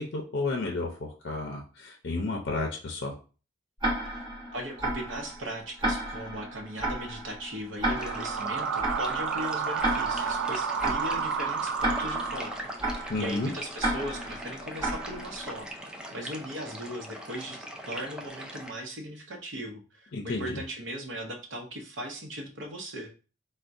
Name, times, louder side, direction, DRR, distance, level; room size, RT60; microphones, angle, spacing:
voice 1, 0.0-3.1 13.1-13.5 20.1-20.6, left 3 dB, 55° left, 1 dB, 0.5 m, -32 dB
Tick-tock, 3.8-15.7, right 1 dB, 20° right, 0.9 m, -33 dB
voice 2, 4.5-15.7 16.1-23.1, equal, 70° right, 3 dB, 0.7 m, -38 dB
sound 1, 7.8-12.9, right 6 dB, 85° right, 0.4 m, -31 dB
sound 2, 8.0-18.7, equal, 5° right, 0.3 m, -42 dB
4.4 x 2.1 x 2.5 m, 0.36 s
head